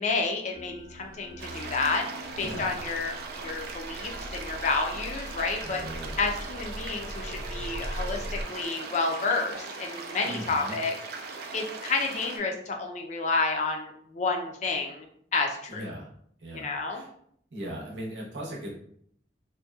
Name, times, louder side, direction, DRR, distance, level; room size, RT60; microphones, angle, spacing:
voice 1, 0.0-2.1 2.4-5.8 6.2-15.1 15.3-15.8 16.5-17.0, left 3 dB, 40° left, 2 dB, 0.4 m, -30 dB
sound 1, 0.5-8.4, equal, 30° right, 0.7 m, -40 dB
sound 2, 1.4-12.4, right 4 dB, 60° right, 0.3 m, -39 dB
voice 2, 2.4-2.7 5.6-6.2 10.2-10.8 15.7-16.1 16.4-17.1 17.5-18.7, right 1 dB, 85° right, -3 dB, 0.8 m, -38 dB
2.6 x 2.1 x 2.3 m, 0.66 s
head